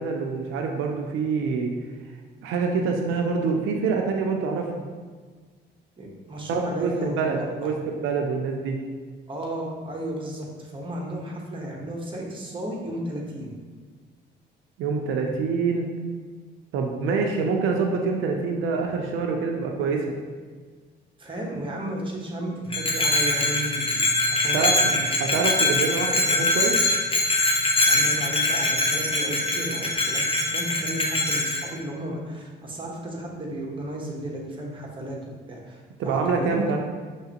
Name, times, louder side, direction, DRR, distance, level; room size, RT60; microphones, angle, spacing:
voice 1, 0.0-1.7 2.4-4.8 6.5-8.8 14.8-15.9 16.7-20.1 24.5-24.8 25.2-26.8 36.0-36.8, right 4 dB, 85° right, 2 dB, 0.5 m, -26 dB
voice 2, 6.0-7.8 9.3-13.5 21.2-25.1 25.4-25.6 27.9-30.2 30.5-36.8, right 1 dB, 25° right, -2 dB, 1.1 m, -34 dB
Bell, 22.7-31.7, left 2 dB, 25° left, 0.8 m, -23 dB
5.7 x 3.0 x 2.9 m, 1.5 s
cardioid pair, 90°, 20 cm